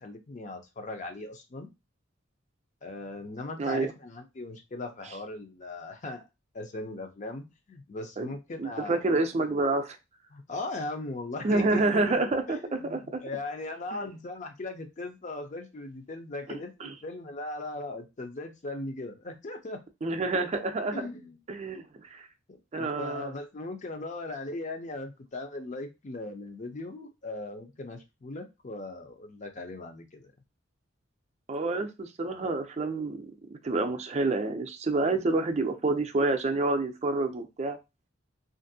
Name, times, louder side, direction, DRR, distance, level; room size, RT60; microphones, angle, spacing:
voice 1, 0.0-1.7 2.8-6.2 6.5-9.6 10.3-19.8 20.9-21.4 22.5-30.3, left 2 dB, 40° left, 0.5 m, -39 dB
voice 2, 3.6-3.9 8.2-8.3 8.6-10.0 11.4-13.2 13.9-14.1 16.5-16.9 20.0-21.0 21.5-21.9 22.1-22.2 22.7-23.3 31.5-33.3 33.6-37.8, right 2 dB, 35° right, 0.4 m, -28 dB
2.6 x 2.5 x 2.6 m
head